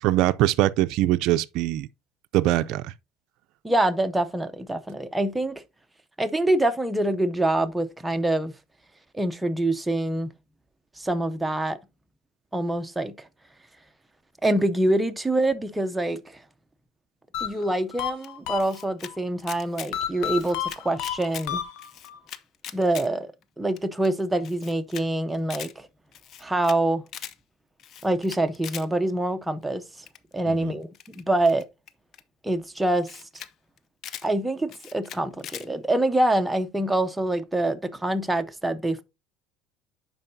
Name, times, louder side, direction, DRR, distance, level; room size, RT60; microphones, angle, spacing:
voice 1, 0.0-1.9 2.3-2.9 30.5-30.7, right 15 dB, 65° right, 0.3 m, -22 dB
voice 2, 3.6-5.6 6.2-8.5 9.1-10.3 11.0-11.8 12.5-13.3 14.4-16.4 17.4-21.6 22.7-25.9 26.4-27.0 28.0-29.8 30.3-31.6 32.4-33.1 34.2-39.0, right 1 dB, 5° right, 0.6 m, -25 dB
sound 1, 17.3-19.2 19.9-22.2, left 10 dB, 75° left, 1.0 m, -31 dB
Camera, 18.2-19.1 19.4-19.9 20.2-21.5 21.8-23.1 23.4-23.5 23.8-23.9 24.0-24.1 24.4-25.0 25.3-25.7 26.1-26.8 27.1-27.3 27.8-28.9 30.1-30.3 30.9-32.2 32.8-32.9 33.0-33.5 33.8-34.3 34.7-35.7, left 9 dB, 50° left, 0.6 m, -40 dB
11.0 x 4.5 x 2.7 m
supercardioid pair, 120°, 0 cm